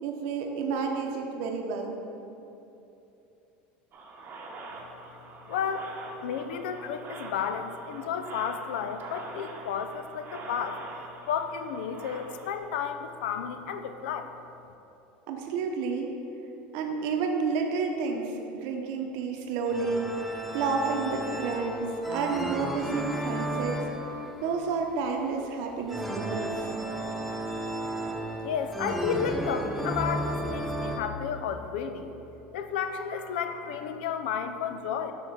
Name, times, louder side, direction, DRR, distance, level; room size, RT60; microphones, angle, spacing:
voice 1, 0.0-2.0 15.3-16.2 16.7-23.8 24.4-26.7, right 5 dB, 65° right, 3 dB, 0.7 m, -30 dB
sound 1, 3.9-12.6, right 2 dB, 35° right, 0.8 m, -44 dB
voice 2, 5.4-5.9 6.2-10.8 11.3-14.3 27.7-27.8 28.4-32.1 32.5-35.1, left 7 dB, 80° left, 7 dB, 0.4 m, -32 dB
sound 2, 19.7-31.0, right 1 dB, ahead, 0.6 m, -33 dB
5.8 x 3.8 x 4.6 m, 2.9 s
supercardioid pair, 95°, 5 cm